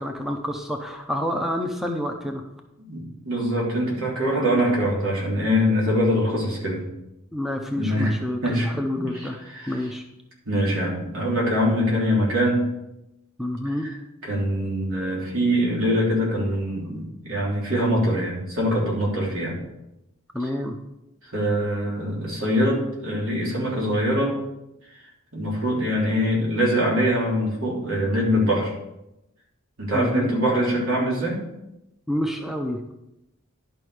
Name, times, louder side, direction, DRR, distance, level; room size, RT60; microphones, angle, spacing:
voice 1, 0.0-2.4 7.3-9.4 9.7-10.0 13.4-13.9 20.3-20.7 29.9-30.3 32.1-32.8, left 1 dB, ahead, 3 dB, 0.6 m, -28 dB
voice 2, 2.9-6.8 7.7-8.1 8.4-9.8 10.4-12.7 13.8-13.9 14.2-19.6 21.3-24.4 25.3-28.7 29.8-31.4, equal, 75° right, -4 dB, 3.1 m, -23 dB
11.0 x 5.5 x 4.9 m, 0.89 s
head